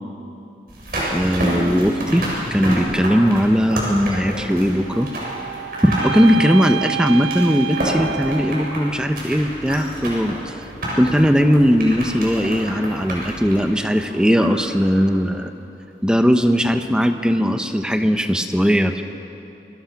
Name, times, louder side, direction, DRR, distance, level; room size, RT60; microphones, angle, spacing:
sound 1, 0.7-14.7 15.0-15.1, right 1 dB, 55° right, 7.2 m, -29 dB
voice 1, 1.1-2.2 2.5-5.1 5.8-10.5 11.0-15.5 16.0-19.0, equal, 5° right, 7 dB, 0.9 m, -18 dB
sound 2, 4.8-9.1, right 8 dB, 90° right, 0.5 m, -29 dB
Mechanisms, 8.2-13.7, equal, 15° left, 3.9 m, -40 dB
28.5 x 22.5 x 5.9 m, 2.8 s
head